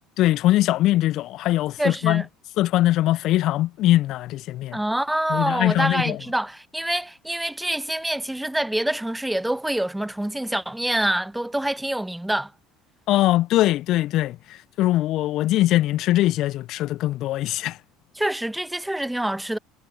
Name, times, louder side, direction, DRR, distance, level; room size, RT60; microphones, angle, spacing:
voice 1, 0.2-2.2 2.6-4.8 5.3-6.2 13.1-17.8, left 15 dB, 60° left, 0.3 m, -21 dB
voice 2, 1.8-2.3 4.7-12.5 18.2-19.6, right 1 dB, 5° right, 0.9 m, -26 dB
hypercardioid pair, 70°, 0 cm